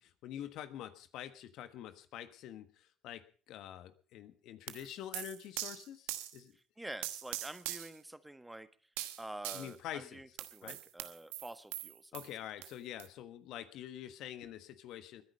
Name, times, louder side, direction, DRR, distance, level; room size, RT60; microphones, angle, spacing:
voice 1, 0.0-6.5 9.5-10.2 10.6-10.8 12.1-15.2, left 11 dB, 70° left, 11 dB, 1.4 m, -46 dB
sound 1, 4.7-6.4 7.0-8.0 9.0-9.7 10.4-12.3 12.6-12.7 13.0-13.1, right 16 dB, 80° right, 1.2 m, -42 dB
voice 2, 6.8-8.7 9.2-12.1, right 1 dB, 10° right, 12 dB, 1.5 m, -47 dB
21.5 x 10.5 x 5.5 m, 0.41 s
hypercardioid pair, 55°, 0 cm